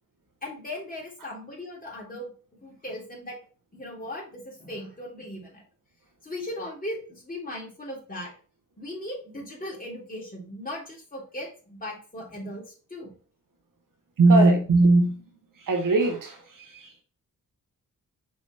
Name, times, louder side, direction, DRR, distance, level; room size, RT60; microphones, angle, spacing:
voice 1, 0.4-3.4 3.7-5.6 6.2-8.3 8.8-13.1, left 1 dB, 25° left, -3 dB, 3.4 m, -38 dB
voice 2, 14.2-15.2 15.6-17.0, right 2 dB, 70° right, 3 dB, 1.6 m, -20 dB
5.9 x 4.0 x 4.7 m, 0.38 s
cardioid pair, 75°, 33 cm